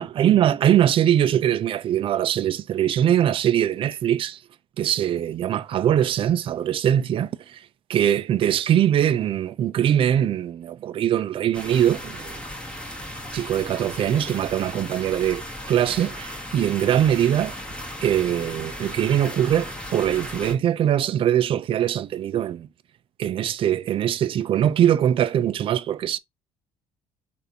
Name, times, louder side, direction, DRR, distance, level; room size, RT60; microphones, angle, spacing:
voice 1, 0.0-4.4 4.8-7.6 7.9-12.4 13.3-15.4 15.7-17.5 18.0-22.7 23.2-26.2, right 10 dB, 45° right, 0.3 m, -22 dB
sound 1, 11.5-20.5, left 1 dB, 10° left, 1.0 m, -36 dB
3.4 x 2.4 x 2.7 m
cardioid pair, 90°, 12 cm